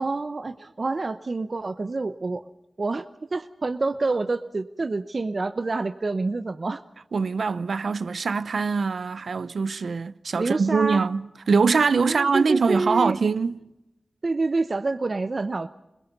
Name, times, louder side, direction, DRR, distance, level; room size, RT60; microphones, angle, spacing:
voice 1, 0.0-2.4 2.8-3.1 3.3-6.8 10.4-11.0 12.0-13.2 14.2-15.7, right 3 dB, 55° right, 0.8 m, -27 dB
voice 2, 7.1-13.6, right 5 dB, 90° right, 0.7 m, -23 dB
26.5 x 21.5 x 5.3 m
wide cardioid pair, 60°, 0 cm